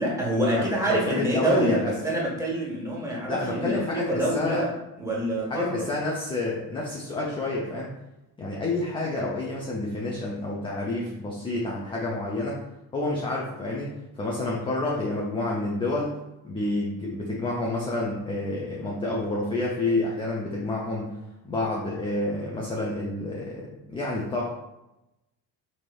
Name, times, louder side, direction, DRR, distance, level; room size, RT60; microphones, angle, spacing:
voice 1, 0.0-4.7 5.0-5.9, right 1 dB, 5° right, -5 dB, 1.3 m, -26 dB
voice 2, 0.5-1.9 3.3-4.7 5.5-7.9 8.4-12.6 12.9-13.9 14.2-16.1 16.4-21.2 21.4-24.5, left 2 dB, 10° left, -3 dB, 0.3 m, -29 dB
3.0 x 2.7 x 2.3 m, 0.93 s
hypercardioid pair, 55°, 49 cm